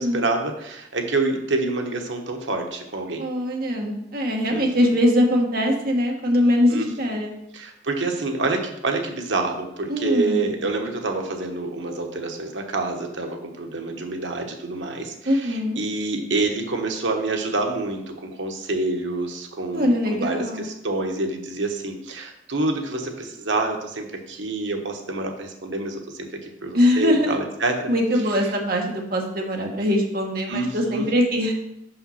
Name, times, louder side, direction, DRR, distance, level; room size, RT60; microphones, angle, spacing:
voice 1, 0.0-3.2 4.5-4.9 6.7-6.9 7.5-27.9 30.5-31.1, right 3 dB, 85° right, 3 dB, 1.2 m, -27 dB
voice 2, 3.2-7.3 9.9-10.5 15.2-15.8 19.7-20.7 26.7-27.3 27.9-31.5, left 1 dB, 50° right, 0 dB, 1.5 m, -22 dB
6.0 x 5.6 x 5.7 m, 0.81 s
head